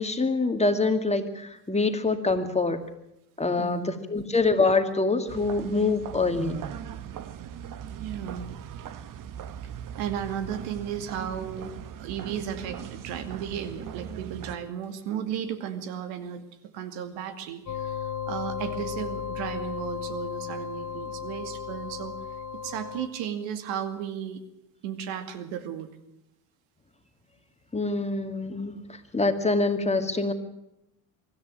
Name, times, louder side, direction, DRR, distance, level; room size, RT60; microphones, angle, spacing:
voice 1, 0.0-2.8 3.4-6.6 27.7-28.8 29.1-30.3, left 3 dB, 15° left, 6 dB, 2.3 m, -25 dB
voice 2, 3.6-4.3 8.0-8.5 10.0-11.7 12.0-16.4 16.7-22.1 22.6-24.4 24.8-26.0, right 9 dB, 65° right, 10 dB, 2.4 m, -34 dB
sound 1, 5.3-14.6, right 9 dB, 40° right, 1.3 m, -39 dB
sound 2, 17.7-23.1, left 7 dB, 35° left, 1.6 m, -35 dB
24.0 x 13.5 x 8.9 m, 0.88 s
hypercardioid pair, 75°, 48 cm